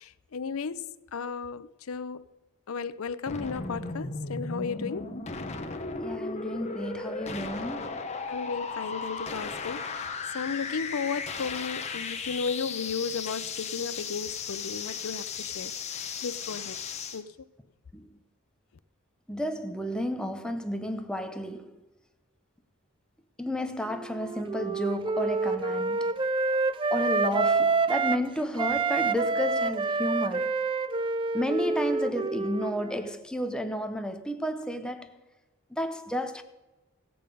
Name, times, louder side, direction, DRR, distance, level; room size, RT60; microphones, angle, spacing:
voice 1, 0.0-2.3 2.7-5.2 8.3-16.8 17.1-17.3, left 5 dB, 80° left, 0.5 m, -34 dB
sound 1, 3.3-17.2, left 4 dB, 30° left, 1.0 m, -36 dB
voice 2, 5.9-8.1 17.9-18.2 19.3-21.9 23.4-26.7 26.9-30.6 31.3-35.2 35.7-36.4, equal, 5° left, 0.7 m, -32 dB
Wind instrument woodwind instrument, 23.9-28.3 28.6-33.1, right 4 dB, 25° right, 0.3 m, -28 dB
16.5 x 8.7 x 5.3 m
head